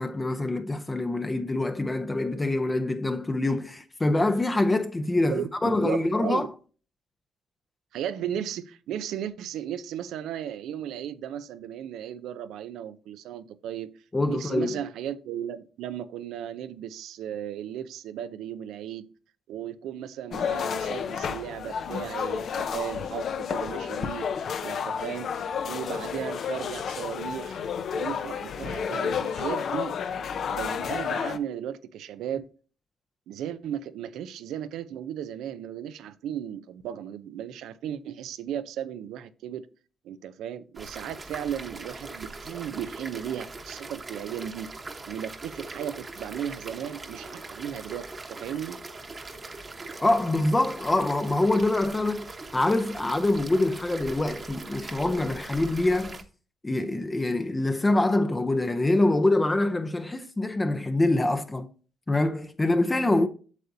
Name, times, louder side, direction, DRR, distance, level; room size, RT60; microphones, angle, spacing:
voice 1, 0.0-6.5 14.1-14.8 50.0-56.2 56.6-61.7 62.1-63.3, left 2 dB, 20° left, 0.6 m, -25 dB
voice 2, 5.3-6.4 7.9-13.9 14.3-19.1 19.5-24.3 24.6-27.6 27.9-30.0 30.5-32.5 33.3-39.7 40.0-44.7 45.1-48.8 63.1-63.3, right 10 dB, 85° right, 0.5 m, -35 dB
sound 1, 20.3-31.4, left 7 dB, 60° left, 0.6 m, -31 dB
sound 2, 40.7-56.2, right 3 dB, 30° right, 1.1 m, -41 dB
8.2 x 6.6 x 2.6 m
cardioid pair, 90°, 0 cm